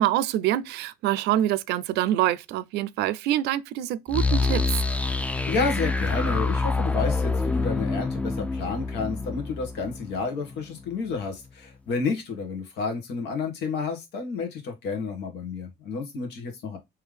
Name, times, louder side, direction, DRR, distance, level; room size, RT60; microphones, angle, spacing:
voice 1, 0.0-4.6, right 13 dB, 85° right, 0.4 m, -25 dB
sound 1, 4.1-10.9, left 3 dB, 10° left, 0.5 m, -26 dB
voice 2, 5.5-16.8, left 4 dB, 85° left, 1.6 m, -30 dB
3.7 x 3.2 x 3.3 m
cardioid pair, 110°, 17 cm